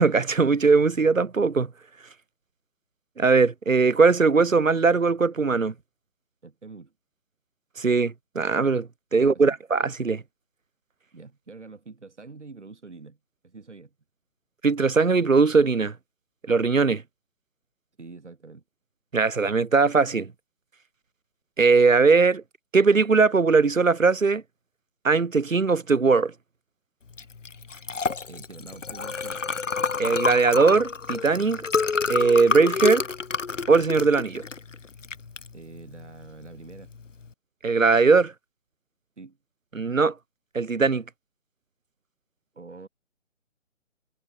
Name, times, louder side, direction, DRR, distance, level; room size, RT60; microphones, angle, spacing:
voice 1, 0.0-1.7 3.2-5.7 7.8-10.2 14.6-15.9 16.5-17.0 19.1-20.3 21.6-22.4 22.7-24.4 25.0-26.3 30.0-31.6 32.1-33.0 33.7-34.4 37.6-38.3 39.7-40.1 40.5-41.0, right 4 dB, 85° right, 1.0 m, -20 dB
voice 2, 6.4-6.9 9.1-9.6 11.1-13.2 13.4-13.9 18.0-18.6 28.3-29.4 35.5-36.9 39.2-39.4 42.5-42.9, right 4 dB, 65° right, 4.0 m, -45 dB
Liquid, 27.1-37.3, left 5 dB, 70° left, 1.1 m, -29 dB
figure-of-eight pair, 145°, 39 cm